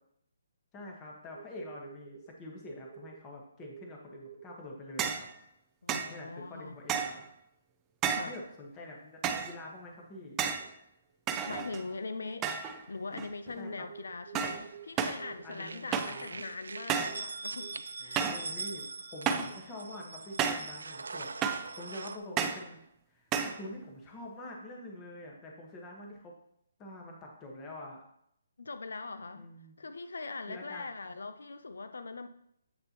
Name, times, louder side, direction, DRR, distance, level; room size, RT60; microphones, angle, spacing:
voice 1, 0.7-5.3 6.1-7.2 8.2-10.4 13.6-13.8 15.4-16.4 18.0-22.8 23.1-26.4 26.8-28.0 29.4-29.7 30.5-30.9, left 1 dB, 15° left, 0 dB, 1.4 m, -46 dB
sound 1, 1.3-2.3 2.7-3.2 3.6-4.5 6.3-6.4 8.7-8.8 11.7-11.8 12.0-12.7 12.9-13.1 13.6-14.9 15.2-17.2 17.6-17.7, right 8 dB, 55° right, 1.1 m, -49 dB
sound 2, 5.0-5.3 5.9-6.2 6.9-7.3 8.0-8.4 9.2-9.6 10.4-10.7 11.3-11.9 12.4-12.8 13.1-13.6 14.4-14.7 15.0-15.3 15.9-16.2 16.9-17.2 18.2-18.5 19.3-19.6 20.4-20.7 21.4-21.7 22.4-22.7 23.3-23.6, right 7 dB, 15° right, 0.4 m, -32 dB
voice 2, 5.8-6.8 8.1-8.3 11.4-12.5 12.9-17.7 18.0-18.3 19.3-19.5 28.6-29.5 29.8-32.3, left 3 dB, 85° left, 10 dB, 0.5 m, -41 dB
sound 3, 14.4-15.2 15.5-22.2, right 4 dB, 85° right, 0.5 m, -42 dB
8.1 x 6.5 x 3.0 m, 0.72 s
hypercardioid pair, 165°, 0 cm